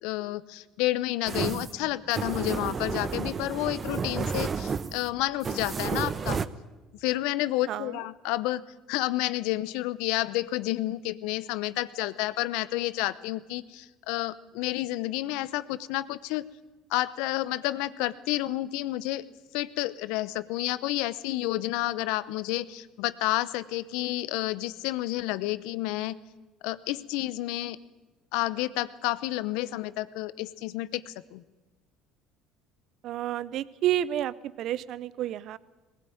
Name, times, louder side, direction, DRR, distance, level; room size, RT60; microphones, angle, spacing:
voice 1, 0.0-6.4 7.0-8.6 8.9-16.4 16.9-19.2 19.5-26.2 26.6-27.8 28.3-31.4, left 17 dB, 75° left, 17 dB, 0.8 m, -30 dB
sound 1, 1.3-6.5, right 5 dB, 35° right, 0.9 m, -31 dB
voice 2, 7.7-8.0 33.0-35.6, right 12 dB, 60° right, 19 dB, 0.8 m, -30 dB
19.5 x 17.0 x 9.3 m, 1.2 s
supercardioid pair, 90°, 0 cm